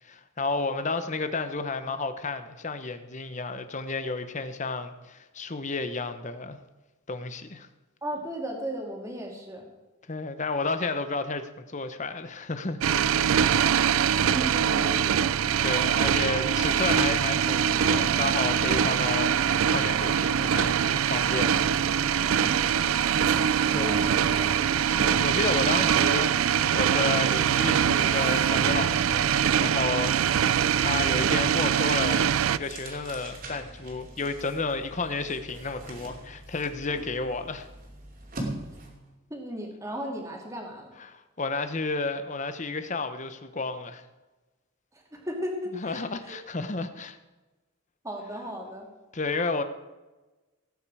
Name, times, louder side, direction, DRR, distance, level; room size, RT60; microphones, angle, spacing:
voice 1, 0.0-6.6 7.1-7.7 10.1-13.1 15.6-21.7 23.1-24.1 24.9-37.7 41.0-44.0 45.8-47.2 49.1-49.6, left 3 dB, 35° left, 10 dB, 1.0 m, -32 dB
voice 2, 8.0-9.7 14.0-15.6 16.2-16.4 22.4-22.7 23.1-24.6 38.7-38.8 39.3-40.9 44.9-46.4 48.0-48.9, equal, 15° right, 0 dB, 2.6 m, -36 dB
sound 1, 12.8-32.6, right 8 dB, 80° right, 0.4 m, -23 dB
sound 2, 25.8-39.1, right 1 dB, 45° right, 2.7 m, -44 dB
17.5 x 9.1 x 4.9 m, 1.2 s
head